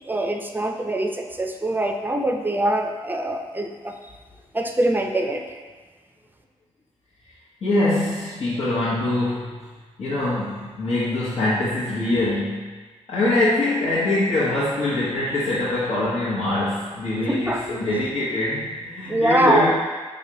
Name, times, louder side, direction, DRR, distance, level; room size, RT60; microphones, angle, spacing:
voice 1, 0.0-3.9 4.5-5.6 17.3-17.6 19.1-19.7, right 1 dB, 15° right, 4 dB, 0.6 m, -23 dB
voice 2, 7.6-9.7 10.0-12.7 13.1-19.7, left 2 dB, 60° left, -10 dB, 1.1 m, -23 dB
5.0 x 3.1 x 2.9 m, 1.4 s
supercardioid pair, 45°, 13 cm